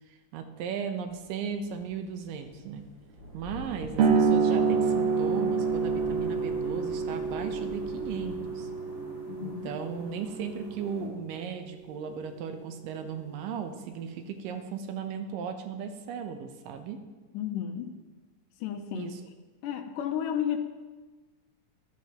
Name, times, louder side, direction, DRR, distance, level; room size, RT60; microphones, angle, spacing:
voice 1, 0.1-2.8 3.3-8.7 9.4-17.0 18.9-19.2, right 6 dB, 85° right, 6 dB, 2.5 m, -36 dB
sound 1, 1.1-8.4, left 1 dB, 35° right, 2.0 m, -48 dB
sound 2, 4.0-11.1, right 5 dB, 60° right, 1.7 m, -28 dB
sound 3, 4.5-11.1, equal, 15° right, 1.4 m, -46 dB
voice 2, 9.3-9.8 17.3-18.0 18.6-19.1 19.6-20.6, left 9 dB, 85° left, 6 dB, 2.3 m, -32 dB
15.0 x 11.0 x 3.0 m, 1.3 s
omnidirectional pair, 3.8 m